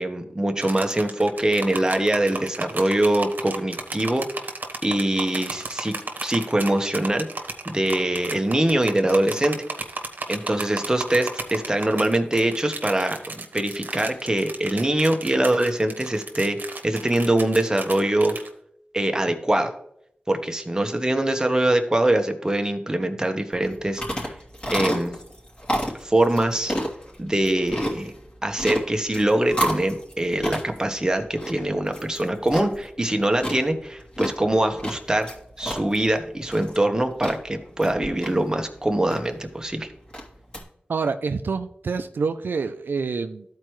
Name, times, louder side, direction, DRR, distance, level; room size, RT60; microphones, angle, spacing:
voice 1, 0.0-4.5 4.8-5.9 6.2-7.3 7.6-9.6 10.3-18.3 18.9-19.7 20.3-24.3 24.7-25.1 26.0-26.8 27.2-28.1 28.4-39.9, right 1 dB, 20° right, 5 dB, 1.1 m, -23 dB
sound 1, 0.6-18.5, right 3 dB, 65° right, 1.2 m, -34 dB
sound 2, 23.5-40.6, equal, 30° left, 2.7 m, -32 dB
voice 2, 40.9-43.4, right 5 dB, 85° right, 9 dB, 0.4 m, -27 dB
13.5 x 4.5 x 3.1 m, 0.72 s
wide cardioid pair, 55°, 3 cm